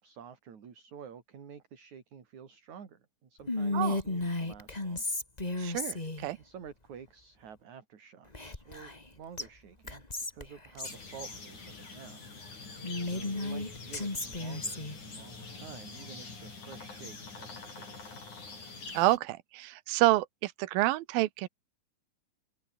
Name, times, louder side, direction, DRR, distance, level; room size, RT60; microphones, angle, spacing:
voice 1, 0.0-5.0 6.4-10.0 10.3-12.2 13.0-18.1, right 7 dB, 55° right, 4.3 m, -50 dB
Whispering, 3.5-6.3 8.3-9.1 9.4-9.5 9.9-11.0 12.8-15.0, left 2 dB, 15° left, 2.2 m, -34 dB
voice 2, 5.6-6.4 18.9-21.5, right 17 dB, 90° right, 2.7 m, -28 dB
sound 1, 10.8-19.2, left 4 dB, 55° left, 8.5 m, -45 dB
open air
omnidirectional pair, 4.1 m